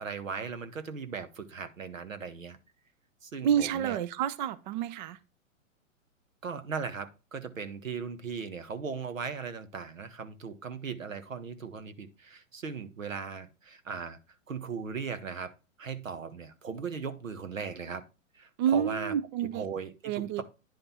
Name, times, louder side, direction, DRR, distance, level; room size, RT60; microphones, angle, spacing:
voice 1, 0.0-2.6 3.2-4.0 6.4-14.2 14.5-15.5 15.8-18.0 18.3-19.1 19.4-20.4, right 5 dB, 75° right, 1.4 m, -38 dB
voice 2, 3.4-5.2 18.6-19.6 20.0-20.4, right 9 dB, 35° right, 0.6 m, -29 dB
10.0 x 5.2 x 4.2 m
figure-of-eight pair, 110°, 40 cm